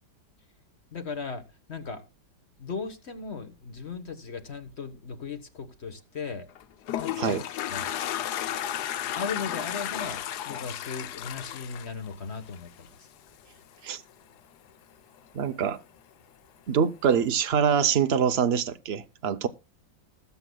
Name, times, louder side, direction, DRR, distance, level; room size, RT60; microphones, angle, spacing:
voice 1, 0.9-1.4 1.7-2.0 2.6-6.5 7.0-7.4 7.6-7.9 9.1-12.9, left 5 dB, 40° left, 1.3 m, -37 dB
Toilet flush, 6.5-12.9, left 11 dB, 65° left, 1.1 m, -33 dB
voice 2, 15.3-15.8 16.7-19.5, right 7 dB, 80° right, 0.5 m, -24 dB
19.5 x 8.0 x 2.2 m
omnidirectional pair, 2.1 m